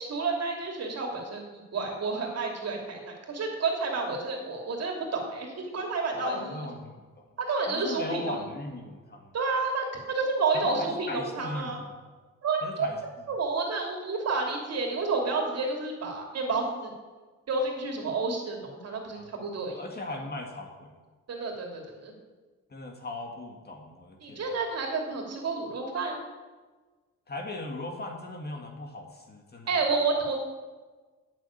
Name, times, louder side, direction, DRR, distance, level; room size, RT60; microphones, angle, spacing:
voice 1, 0.0-6.6 7.4-8.4 9.3-11.8 12.4-12.9 13.3-16.9 17.5-18.6 18.8-19.8 20.1-20.2 21.3-22.1 24.2-26.2 29.7-30.5, right 4 dB, 55° right, 1 dB, 2.9 m, -30 dB
voice 2, 6.1-7.2 7.7-9.3 10.5-11.7 12.6-13.0 19.1-19.3 19.8-20.9 22.7-24.4 27.3-29.7, left 2 dB, 35° left, 2 dB, 2.1 m, -37 dB
9.1 x 7.3 x 8.7 m, 1.3 s
cardioid pair, 90°, 30 cm